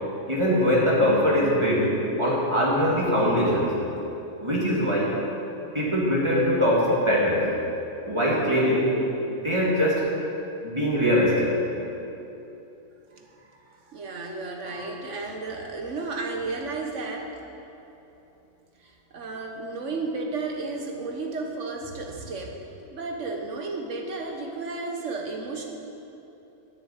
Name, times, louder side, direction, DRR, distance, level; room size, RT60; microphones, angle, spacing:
voice 1, 0.3-1.9 2.2-3.7 4.4-5.1 5.7-7.5 8.0-8.9 9.3-10.0 10.6-11.5 14.7-14.9, equal, 20° right, -5 dB, 2.4 m, -22 dB
voice 2, 13.1-17.4 18.8-22.6 22.9-25.6, right 3 dB, 60° right, 2 dB, 1.5 m, -33 dB
10.0 x 6.6 x 9.0 m, 2.9 s
omnidirectional pair, 1.5 m